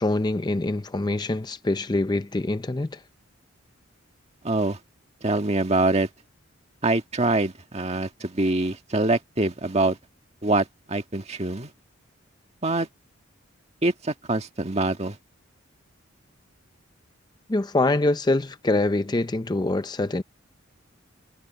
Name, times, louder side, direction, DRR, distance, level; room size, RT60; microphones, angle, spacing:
voice 1, 0.0-3.0 17.5-20.2, left 2 dB, 20° left, 0.5 m, -24 dB
voice 2, 4.4-4.8 5.2-6.1 6.8-10.0 10.4-11.7 12.6-12.9 13.8-15.1, right 2 dB, 30° right, 1.6 m, -24 dB
head